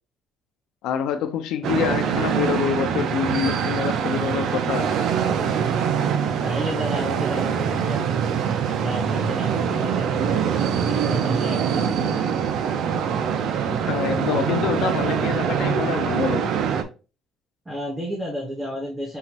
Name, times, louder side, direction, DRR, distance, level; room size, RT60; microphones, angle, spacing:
voice 1, 0.8-4.9 13.9-16.5, left 8 dB, 80° left, 0.7 m, -26 dB
sound 1, 1.6-16.8, right 7 dB, 70° right, 0.6 m, -24 dB
voice 2, 6.4-8.2 8.6-12.3 17.6-19.2, equal, 15° right, 1.1 m, -32 dB
5.6 x 3.0 x 2.9 m
cardioid pair, 135°, 0 cm